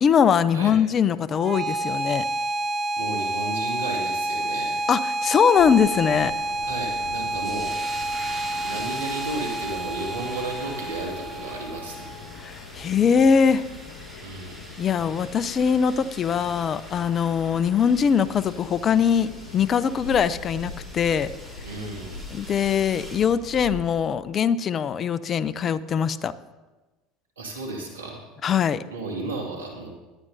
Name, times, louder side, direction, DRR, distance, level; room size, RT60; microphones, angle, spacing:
voice 1, 0.0-2.3 4.9-6.3 12.4-13.6 14.8-21.3 22.3-26.3 28.4-28.8, left 7 dB, 40° left, 15 dB, 0.6 m, -22 dB
sound 1, 1.3-12.3, right 2 dB, 35° right, 1.0 m, -29 dB
voice 2, 3.0-4.8 6.6-7.7 8.6-12.0 14.2-14.6 21.6-22.2 27.4-28.2 28.9-29.9, right 2 dB, 90° right, 0 dB, 2.2 m, -33 dB
sound 2, 5.5-23.8, left 4 dB, 75° left, 1.5 m, -42 dB
sound 3, 7.4-23.3, equal, ahead, 3.8 m, -44 dB
18.0 x 11.0 x 2.7 m, 1.2 s
hypercardioid pair, 75°, 0 cm